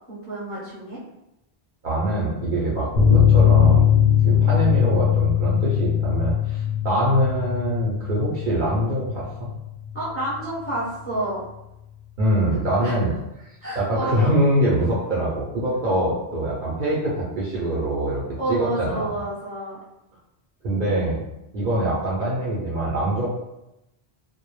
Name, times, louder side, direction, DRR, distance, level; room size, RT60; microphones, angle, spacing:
voice 1, 0.1-1.0 9.9-11.4 12.8-12.9 13.6-14.3 18.4-19.8, right 1 dB, 15° left, -9 dB, 0.7 m, -29 dB
voice 2, 1.8-3.9 4.2-9.5 12.2-13.1 13.4-13.5 13.8-18.2 18.5-19.0 20.6-21.2 21.5-23.3, right 1 dB, 55° right, -6 dB, 0.7 m, -23 dB
sound 1, 3.0-10.1 10.3-10.4 10.8-10.9, left 9 dB, 60° left, 0.6 m, -20 dB
2.1 x 2.1 x 3.0 m, 0.89 s
omnidirectional pair, 1.1 m